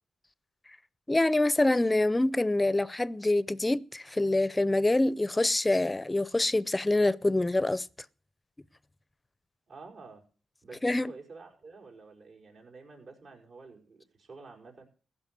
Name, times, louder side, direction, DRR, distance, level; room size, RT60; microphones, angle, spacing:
voice 1, 1.1-7.9 10.8-11.1, left 2 dB, 20° left, 0.6 m, -26 dB
voice 2, 9.7-10.2 10.6-14.9, right 4 dB, 70° right, 5.4 m, -49 dB
15.5 x 5.7 x 8.3 m
cardioid pair, 65°, 0 cm